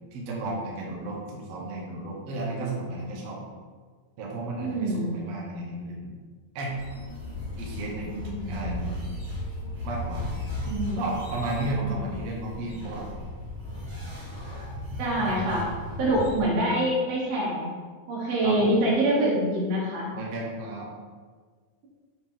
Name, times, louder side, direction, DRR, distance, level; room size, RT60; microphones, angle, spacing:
voice 1, 0.1-3.4 4.2-6.1 6.6-6.8 7.6-8.1 8.5-8.9 9.8-10.2 11.0-13.1 18.4-18.9 20.1-20.9, right 2 dB, 60° right, -3 dB, 1.9 m, -33 dB
voice 2, 4.6-5.2 8.1-8.7 10.7-11.1 11.7-12.1 15.0-15.6 16.0-17.7 18.1-20.1, right 1 dB, 80° right, -7 dB, 4.0 m, -25 dB
sound 1, 6.7-16.4, left 1 dB, 35° right, 2.3 m, -36 dB
7.2 x 5.2 x 3.7 m, 1.5 s
omnidirectional pair, 4.2 m